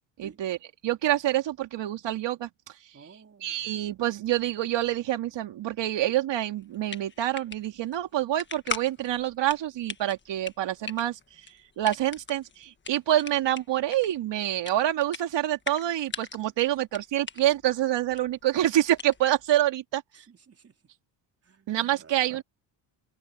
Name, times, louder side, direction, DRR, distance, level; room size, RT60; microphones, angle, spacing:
voice 1, 0.2-0.6 0.8-2.5 3.4-11.2 11.8-20.0 21.7-22.4, right 13 dB, 65° right, 2.8 m, -27 dB
voice 2, 2.9-3.7 20.1-20.8 21.4-21.7 22.0-22.4, right 5 dB, 30° right, 4.3 m, -52 dB
sound 1, 6.6-19.5, left 5 dB, 25° left, 1.6 m, -41 dB
cardioid pair, 125°, 47 cm